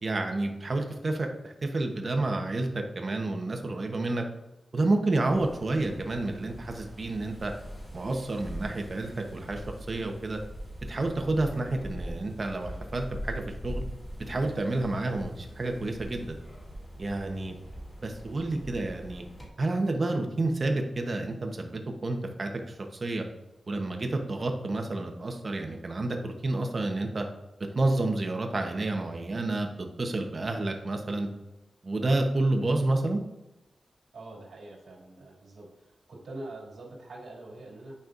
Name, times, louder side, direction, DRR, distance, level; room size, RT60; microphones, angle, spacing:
voice 1, 0.0-4.2 4.7-7.5 7.9-9.6 9.9-10.4 10.9-13.8 14.3-16.3 17.0-17.6 18.0-19.2 19.6-22.7 23.0-23.2 23.7-27.3 27.7-31.3 31.8-33.2, right 2 dB, 40° right, 4 dB, 1.0 m, -29 dB
sound 1, 5.2-19.5, equal, 20° left, 2.6 m, -42 dB
voice 2, 34.1-38.0, right 2 dB, 90° right, -4 dB, 2.7 m, -44 dB
10.5 x 5.5 x 2.6 m, 0.91 s
wide cardioid pair, 130°, 0 cm